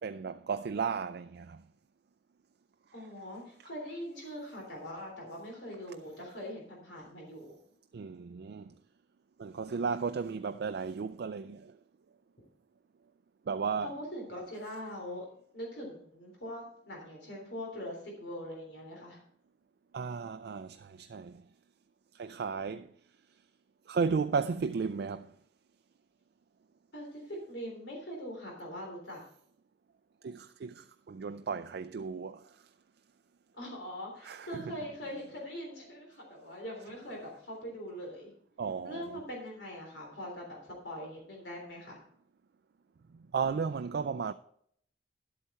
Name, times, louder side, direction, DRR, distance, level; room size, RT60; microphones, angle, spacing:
voice 1, 0.0-1.6 7.9-8.8 9.4-11.8 13.5-14.0 19.9-21.5 22.1-22.9 23.9-25.3 30.2-32.7 34.2-34.8 38.6-39.2 43.1-44.3, right 5 dB, 60° right, 0.4 m, -34 dB
voice 2, 2.9-7.5 13.8-15.3 15.5-19.2 26.9-29.2 33.5-38.3 38.8-42.0, equal, 75° left, 3.4 m, -42 dB
11.5 x 8.2 x 4.3 m
head